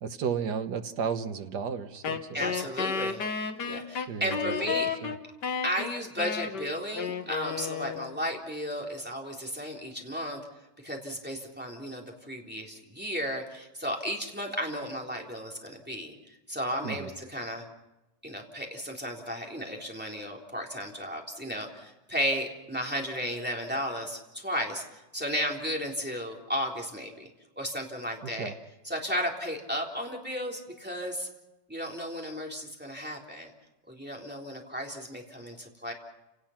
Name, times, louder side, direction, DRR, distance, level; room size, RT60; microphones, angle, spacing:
voice 1, 0.0-2.5 4.1-4.5 5.0-5.1 16.8-17.1 28.4-28.5, right 6 dB, 70° right, 8 dB, 1.8 m, -33 dB
Wind instrument woodwind instrument, 2.0-8.3, left 6 dB, 70° left, 2.0 m, -32 dB
voice 2, 2.3-3.2 3.7-4.9 5.6-10.4 10.8-17.7 18.2-24.8 25.1-27.3 27.6-28.5 28.8-31.3 31.7-33.5 33.9-35.9, equal, 5° right, -1 dB, 3.6 m, -34 dB
30.0 x 18.5 x 5.9 m, 1.0 s
omnidirectional pair, 1.9 m